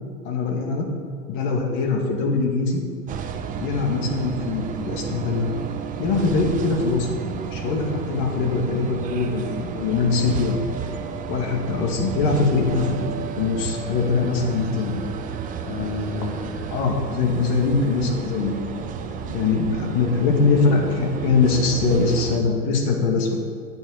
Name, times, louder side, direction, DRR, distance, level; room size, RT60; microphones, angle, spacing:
voice 1, 0.2-0.9 1.3-2.8 3.6-5.5 6.0-10.6 11.3-13.0 13.4-15.1 15.6-18.6 19.1-23.4, left 4 dB, 45° left, 1 dB, 2.2 m, -22 dB
sound 1, 3.1-22.4, right 7 dB, 15° right, 0.5 m, -32 dB
14.5 x 8.2 x 4.0 m, 2.3 s
hypercardioid pair, 110°, 49 cm